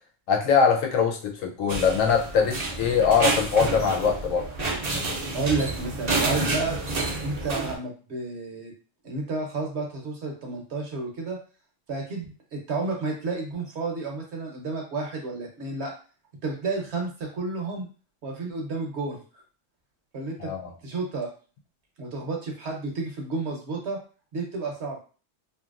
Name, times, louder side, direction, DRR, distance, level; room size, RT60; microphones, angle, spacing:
voice 1, 0.3-4.5 20.4-20.7, left 6 dB, 85° left, 2 dB, 1.0 m, -22 dB
sound 1, 1.7-7.7, right 2 dB, 45° right, 0.6 m, -29 dB
voice 2, 5.3-6.7 7.2-8.7 9.0-11.4 11.9-12.2 12.5-15.9 16.4-17.9 18.2-19.2 20.1-20.5 20.8-21.3 22.0-24.0 24.3-25.0, right 3 dB, 60° right, 1 dB, 1.0 m, -31 dB
2.8 x 2.6 x 2.4 m, 0.37 s
omnidirectional pair, 1.3 m